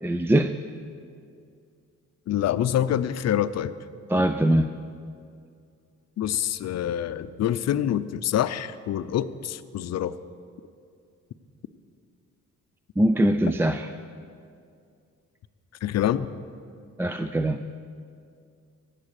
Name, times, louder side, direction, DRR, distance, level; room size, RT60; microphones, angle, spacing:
voice 1, 0.0-0.5 4.1-4.7 13.0-13.9 17.0-17.6, right 1 dB, 10° right, 9 dB, 0.4 m, -22 dB
voice 2, 2.3-3.7 6.2-10.2 15.8-16.3, left 11 dB, 60° left, 14 dB, 0.6 m, -26 dB
18.5 x 7.5 x 6.6 m, 2.3 s
cardioid pair, 90°, 30 cm